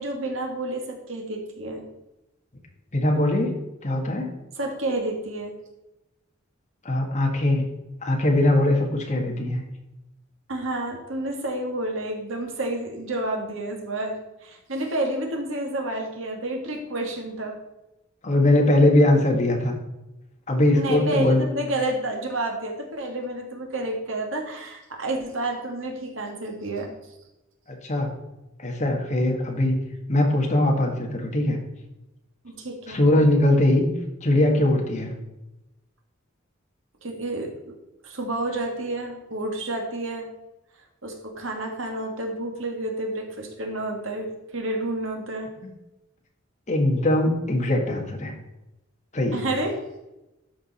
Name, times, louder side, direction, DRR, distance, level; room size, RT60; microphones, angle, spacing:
voice 1, 0.0-1.8 4.6-5.5 10.5-17.6 20.7-26.9 32.4-33.0 37.0-37.7 38.0-40.3 41.0-45.5 49.3-49.8, right 1 dB, 70° right, 2 dB, 1.8 m, -30 dB
voice 2, 2.9-3.5 3.8-4.3 6.8-7.6 8.0-9.6 18.2-19.8 20.5-21.4 27.7-28.1 28.6-29.8 30.1-31.6 32.9-33.9 34.2-35.1 45.6-45.7 46.7-48.3 49.1-49.4, left 1 dB, 35° left, 1 dB, 1.6 m, -21 dB
12.5 x 4.8 x 4.2 m, 0.95 s
head